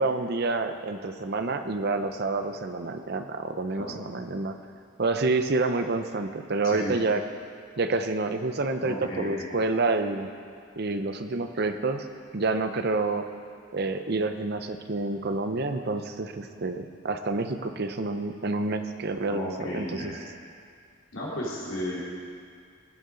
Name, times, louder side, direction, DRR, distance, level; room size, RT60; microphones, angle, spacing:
voice 1, 0.0-4.6 5.0-7.2 7.8-10.3 10.8-12.1 12.3-13.3 13.7-20.1, right 3 dB, 50° right, 8 dB, 0.6 m, -28 dB
voice 2, 3.8-4.1 6.6-7.0 8.8-9.5 19.3-20.1 21.1-22.0, equal, 70° left, -6 dB, 3.4 m, -34 dB
18.0 x 8.3 x 3.9 m, 2.2 s
head